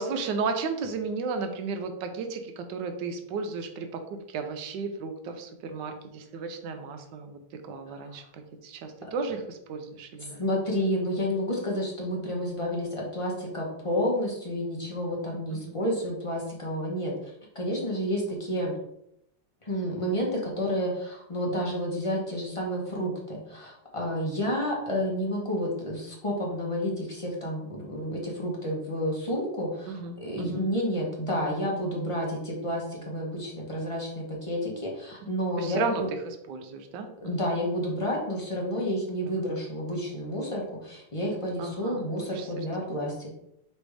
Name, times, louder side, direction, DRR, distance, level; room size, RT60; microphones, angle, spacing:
voice 1, 0.0-7.4 7.7-10.4 15.5-15.8 29.9-30.7 35.2-35.3 35.6-37.5 39.3-39.4 41.6-42.5 42.8-43.1, right 4 dB, 90° right, 6 dB, 1.3 m, -34 dB
voice 2, 10.2-18.7 19.6-36.1 37.2-43.3, equal, 30° left, -2 dB, 0.6 m, -30 dB
3.4 x 3.2 x 4.7 m, 0.78 s
omnidirectional pair, 1.9 m